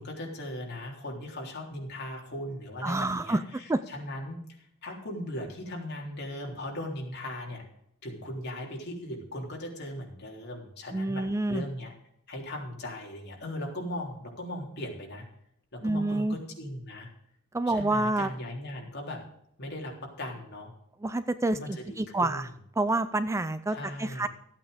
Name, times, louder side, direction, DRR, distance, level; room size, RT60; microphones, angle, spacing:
voice 1, 0.0-7.6 8.0-11.9 12.3-15.3 15.7-17.1 17.7-19.2 19.6-20.7 21.5-22.5 23.7-24.3, left 1 dB, 55° left, 0 dB, 3.6 m, -38 dB
voice 2, 2.8-3.4 3.7-3.8 10.9-11.6 15.8-16.4 17.5-18.3 21.0-22.5 22.8-24.3, right 2 dB, 15° right, 12 dB, 0.4 m, -28 dB
14.0 x 8.7 x 5.1 m, 0.71 s
head